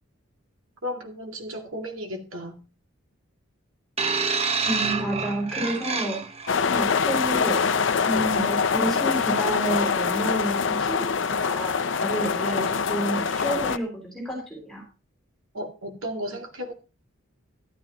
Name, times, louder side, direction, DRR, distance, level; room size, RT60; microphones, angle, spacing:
voice 1, 0.8-2.6 15.5-16.7, equal, 80° right, 3 dB, 2.3 m, -34 dB
sound 1, 4.0-6.5 7.4-7.6, right 4 dB, 30° right, 0.9 m, -27 dB
voice 2, 4.6-6.2 6.6-7.6 8.0-14.8, right 1 dB, ahead, -1 dB, 4.9 m, -30 dB
sound 2, 6.5-13.8, left 5 dB, 65° left, 0.6 m, -24 dB
13.5 x 12.0 x 3.0 m, 0.32 s
head